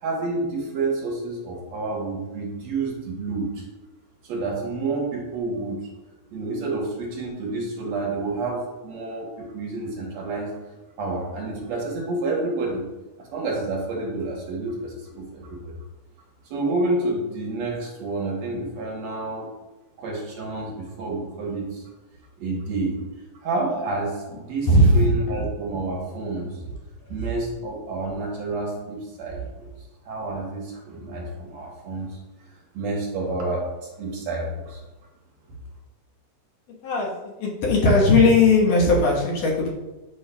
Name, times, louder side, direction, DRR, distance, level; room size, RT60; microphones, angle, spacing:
voice 1, 0.0-3.6 4.3-5.8 6.3-10.5 11.0-12.8 13.2-15.7 16.5-19.5 20.0-21.8 22.4-23.0 23.4-26.5 27.1-29.7 30.1-32.1 32.7-33.7 34.0-34.8, right 2 dB, 65° right, -1 dB, 2.0 m, -29 dB
voice 2, 24.7-25.1 36.8-39.7, left 2 dB, 80° left, -3 dB, 2.9 m, -18 dB
8.5 x 5.4 x 2.3 m, 1.1 s
omnidirectional pair, 3.7 m